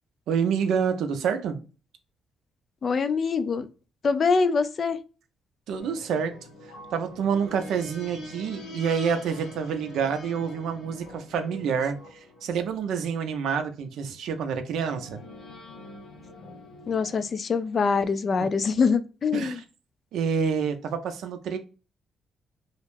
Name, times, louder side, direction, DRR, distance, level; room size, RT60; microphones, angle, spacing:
voice 1, 0.3-1.6 5.7-6.4 6.9-15.2 19.3-19.6 20.1-21.6, right 6 dB, 80° right, 0.4 m, -28 dB
voice 2, 2.8-3.7 4.0-5.0 16.9-19.6, left 5 dB, 45° left, 0.3 m, -24 dB
sound 1, 5.8-13.7 14.7-17.3, left 2 dB, 80° left, 1.1 m, -45 dB
2.3 x 2.1 x 3.1 m
cardioid pair, 90°, 0 cm